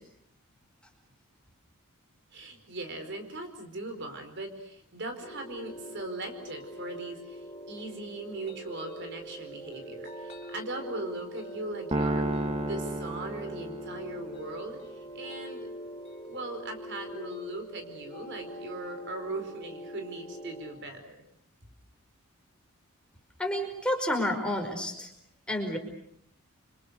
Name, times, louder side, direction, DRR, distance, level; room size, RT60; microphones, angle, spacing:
voice 1, 2.3-15.7 16.2-21.2, right 2 dB, 55° right, 6 dB, 4.5 m, -39 dB
sound 1, 5.2-20.7, equal, 30° left, 5.4 m, -43 dB
sound 2, 11.9-14.3, right 1 dB, 30° right, 1.7 m, -31 dB
voice 2, 23.4-25.1 25.5-25.8, left 1 dB, 5° left, 3 dB, 5.0 m, -30 dB
29.5 x 26.0 x 6.7 m, 0.68 s
head